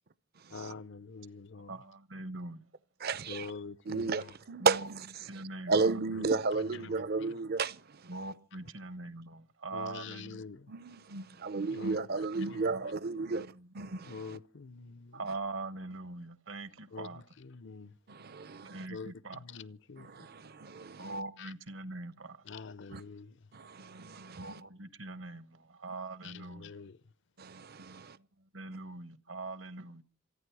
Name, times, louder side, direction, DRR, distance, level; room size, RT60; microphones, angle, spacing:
voice 1, 0.5-1.7 3.3-4.3 6.2-6.4 6.7-7.4 9.7-10.7 11.7-12.1 12.4-12.7 14.1-15.2 16.9-17.1 17.4-17.9 18.9-20.1 21.4-21.5 22.5-23.3 26.2-27.0, left 4 dB, 60° left, 0.7 m, -45 dB
voice 2, 1.7-2.6 4.6-4.9 5.3-5.9 8.1-10.4 12.7-12.9 13.2-13.7 15.1-17.2 18.6-19.4 21.0-22.4 24.3-26.7 28.5-30.0, right 2 dB, 65° right, 1.2 m, -42 dB
voice 3, 3.0-3.5 3.9-5.1 5.7-7.8 10.7-13.5 13.7-14.4 18.1-18.9 20.0-21.1 22.9-23.0 23.5-24.6 27.4-28.2, right 4 dB, 50° right, 0.7 m, -33 dB
27.5 x 9.9 x 4.7 m
head